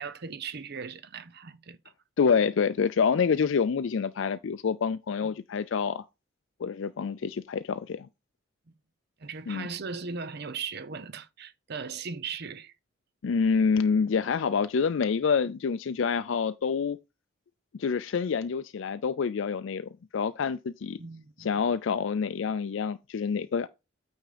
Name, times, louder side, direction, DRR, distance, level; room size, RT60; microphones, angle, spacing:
voice 1, 0.0-1.8 5.2-5.3 9.2-12.7 21.0-21.5, right 5 dB, 55° right, 0.7 m, -38 dB
voice 2, 2.2-6.0 6.6-8.1 9.5-9.7 13.2-17.0 17.8-21.0 21.4-23.7, left 6 dB, 65° left, 0.4 m, -27 dB
9.1 x 3.6 x 5.1 m
head